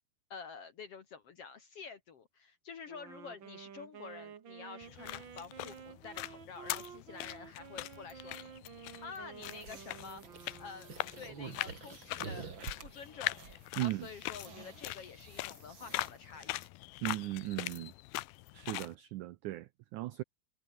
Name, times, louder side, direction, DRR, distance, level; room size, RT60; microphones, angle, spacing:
voice 1, 0.3-8.4 9.0-10.2 10.6-12.5 12.8-13.4 13.8-16.6, left 5 dB, 55° left, 1.8 m, -49 dB
Wind instrument woodwind instrument, 2.9-11.5, right 8 dB, 50° right, 1.4 m, -52 dB
sound 1, 4.8-18.9, left 19 dB, 85° left, 2.5 m, -42 dB
sound 2, 9.5-16.7, right 5 dB, 35° right, 3.1 m, -49 dB
voice 2, 13.8-14.1 17.0-17.9 18.5-20.2, right 17 dB, 85° right, 1.7 m, -37 dB
omnidirectional pair, 4.4 m